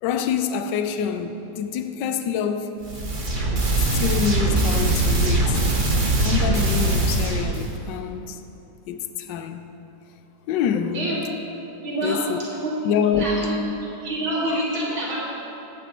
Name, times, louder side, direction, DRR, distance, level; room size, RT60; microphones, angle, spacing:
voice 1, 0.0-2.7 3.9-5.6 6.2-8.4 8.9-9.7 10.5-11.1 12.0-12.4 12.8-13.5 14.5-14.6, left 7 dB, 75° left, 1.2 m, -26 dB
sound 1, 2.8-7.7, right 2 dB, 30° right, 1.2 m, -21 dB
voice 2, 11.8-12.7 13.2-13.5 14.0-15.2, right 1 dB, 85° right, 3.2 m, -26 dB
16.5 x 8.8 x 3.0 m
omnidirectional pair, 2.1 m